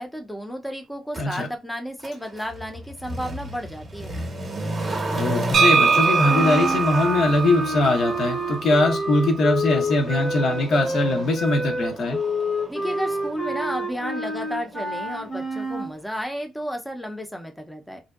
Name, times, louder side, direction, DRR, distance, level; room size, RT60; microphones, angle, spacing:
voice 1, 0.0-4.1 12.7-18.0, equal, 5° left, 0.5 m, -32 dB
Motor vehicle (road), 1.1-1.3 2.0-14.9 15.2-15.3, right 2 dB, 30° right, 0.8 m, -33 dB
voice 2, 1.2-1.5 5.1-12.2, left 2 dB, 65° left, 0.7 m, -21 dB
sound 1, 5.5-9.3, right 5 dB, 60° right, 0.5 m, -23 dB
sound 2, 6.3-15.9, equal, 35° left, 0.8 m, -28 dB
2.5 x 2.1 x 2.3 m
cardioid pair, 90°, 0 cm